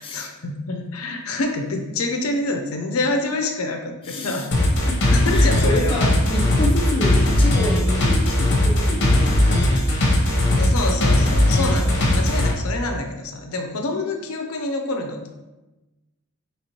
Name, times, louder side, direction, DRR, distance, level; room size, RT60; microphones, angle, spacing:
voice 1, 0.0-4.6 5.1-6.2 10.6-15.3, left 2 dB, 85° left, 4 dB, 0.5 m, -27 dB
voice 2, 4.0-4.5 4.8-10.1, left 1 dB, 25° left, -1 dB, 0.6 m, -29 dB
sound 1, 4.5-12.5, left 1 dB, 55° left, 0.8 m, -18 dB
4.3 x 3.0 x 2.9 m, 1.1 s
head